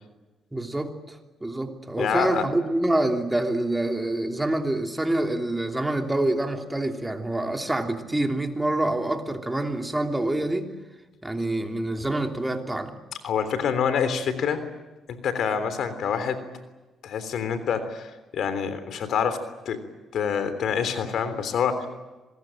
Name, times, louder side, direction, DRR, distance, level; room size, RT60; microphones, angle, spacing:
voice 1, 0.5-10.7 11.2-13.0, right 1 dB, 10° right, 4 dB, 3.1 m, -26 dB
voice 2, 2.0-2.4 13.2-14.6 15.1-16.4 17.0-19.4 19.7-19.8 20.1-21.9, left 7 dB, 70° left, 11 dB, 3.4 m, -26 dB
26.0 x 21.5 x 9.1 m, 1.2 s
cardioid pair, 90°, 0 cm